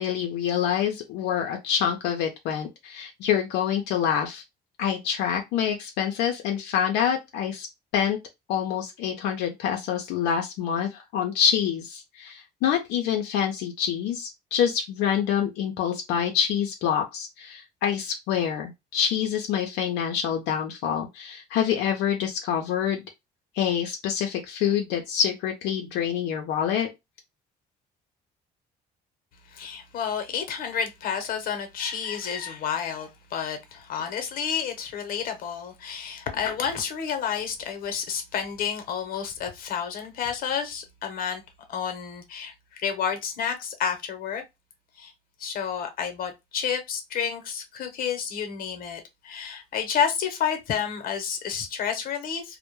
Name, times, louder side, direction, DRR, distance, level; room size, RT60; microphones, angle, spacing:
voice 1, 0.0-4.4 4.8-7.7 7.9-8.2 8.5-23.0 23.5-26.9, left 8 dB, 90° left, 0.5 m, -26 dB
voice 2, 29.5-41.4 41.7-44.4 45.0-45.1 45.4-52.6, left 7 dB, 60° left, 0.8 m, -30 dB
2.1 x 2.0 x 2.9 m
cardioid pair, 110°, 17 cm